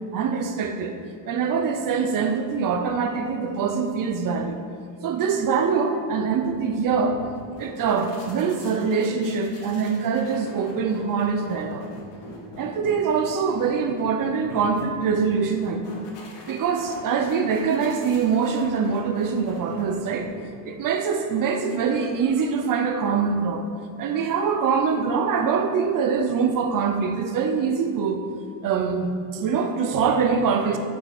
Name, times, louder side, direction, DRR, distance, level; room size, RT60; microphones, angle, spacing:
voice 1, 0.1-0.9 1.3-4.6 5.0-7.2 7.6-11.9 12.6-16.0 16.5-20.3 20.6-23.7 24.0-28.2 28.6-30.8, right 5 dB, 45° right, 6 dB, 0.7 m, -24 dB
sound 1, 6.5-20.9, left 2 dB, 65° left, 1.4 m, -44 dB
5.8 x 3.9 x 5.9 m, 2.1 s
supercardioid pair, 110°, 46 cm